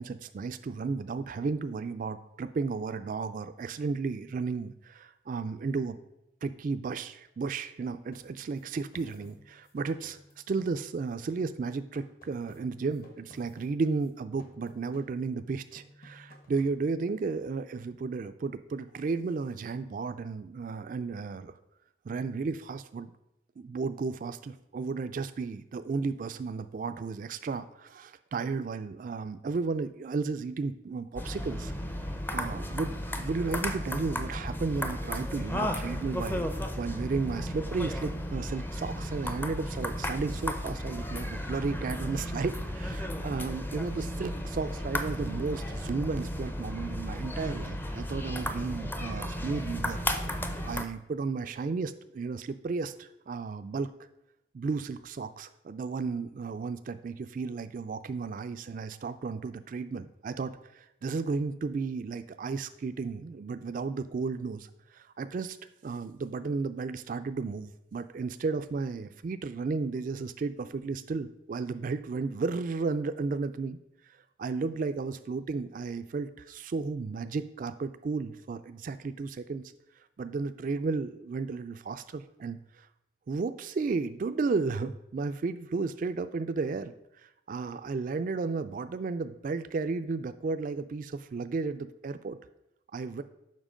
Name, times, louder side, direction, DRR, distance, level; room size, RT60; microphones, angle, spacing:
voice 1, 0.0-6.0 6.4-10.2 10.5-21.5 22.0-23.1 23.6-31.7 32.3-50.0 50.6-53.9 54.5-65.6 65.8-73.8 74.1-79.6 80.2-82.9 83.3-92.4 92.9-93.2, right 4 dB, 50° right, 10 dB, 0.3 m, -33 dB
sound 1, 8.1-11.1 11.4-14.1 14.4-15.5 15.7-16.8, equal, 55° left, 1.3 m, -56 dB
sound 2, 31.2-50.9, equal, 10° left, 0.5 m, -34 dB
7.4 x 5.8 x 4.9 m, 0.85 s
head